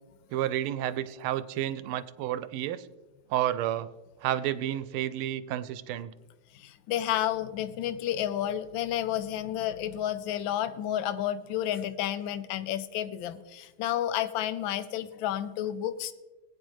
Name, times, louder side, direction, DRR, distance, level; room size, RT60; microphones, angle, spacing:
voice 1, 0.3-2.9 3.3-3.9 4.2-6.1, right 12 dB, 90° right, 14 dB, 1.5 m, -31 dB
voice 2, 6.5-16.1, left 11 dB, 70° left, 12 dB, 1.4 m, -31 dB
20.5 x 9.1 x 3.2 m, 1.2 s
omnidirectional pair, 2.3 m